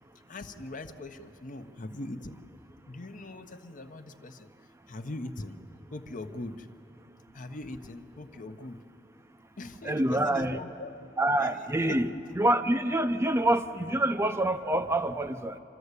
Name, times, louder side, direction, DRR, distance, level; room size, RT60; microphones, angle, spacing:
voice 1, 0.3-2.4 2.9-4.5 4.9-5.6 5.9-6.7 7.3-8.8 9.6-11.1 11.4-12.5, left 2 dB, 45° left, 8 dB, 0.8 m, -41 dB
voice 2, 9.8-10.6 11.2-12.1 12.4-15.6, right 1 dB, 15° right, 8 dB, 0.6 m, -26 dB
27.0 x 12.0 x 8.2 m, 2.8 s
head